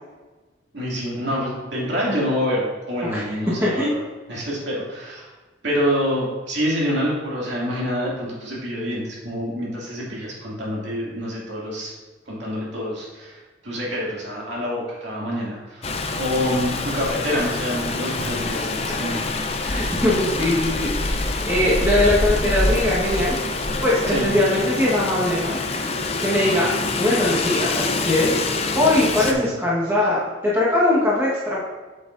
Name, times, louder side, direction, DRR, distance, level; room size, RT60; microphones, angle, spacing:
voice 1, 0.7-4.0 4.3-5.3 5.6-11.9 12.3-19.3 24.1-24.4 29.2-29.5, equal, 65° right, -5 dB, 2.4 m, -26 dB
Rain, 15.8-29.3, left 3 dB, 30° left, 0.5 m, -25 dB
voice 2, 19.6-23.4 23.8-26.7 27.0-28.4 28.7-31.6, left 1 dB, 15° right, -7 dB, 1.3 m, -21 dB
7.9 x 7.6 x 2.6 m, 1.3 s
head